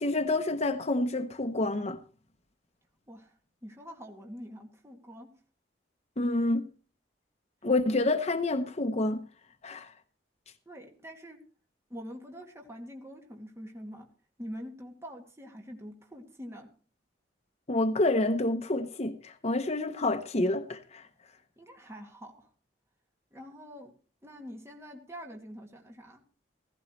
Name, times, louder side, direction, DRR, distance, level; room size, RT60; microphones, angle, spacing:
voice 1, 0.0-2.0 6.2-6.7 7.6-9.2 9.6-9.9 17.7-21.1, left 2 dB, 40° left, 0.9 m, -28 dB
voice 2, 3.6-5.3 10.7-11.4 11.9-14.1 14.4-16.7 21.6-22.5 23.3-23.9 24.2-26.2, equal, 15° right, 2.2 m, -45 dB
15.5 x 15.5 x 3.2 m
head